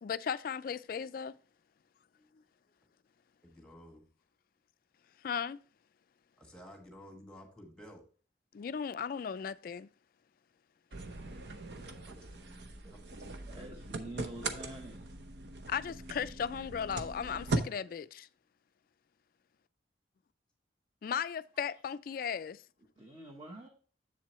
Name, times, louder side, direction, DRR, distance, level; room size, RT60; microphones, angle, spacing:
voice 1, 0.0-1.3 5.2-5.6 8.5-9.9 15.7-18.3 21.0-22.6, left 7 dB, 50° left, 0.3 m, -36 dB
voice 2, 3.4-4.0 6.4-8.0 11.7-13.1, equal, 5° left, 1.8 m, -54 dB
sound 1, 10.9-17.6, right 3 dB, 70° right, 0.8 m, -40 dB
voice 3, 13.5-15.1 23.0-23.7, right 2 dB, 25° right, 1.1 m, -46 dB
7.5 x 7.4 x 3.0 m
head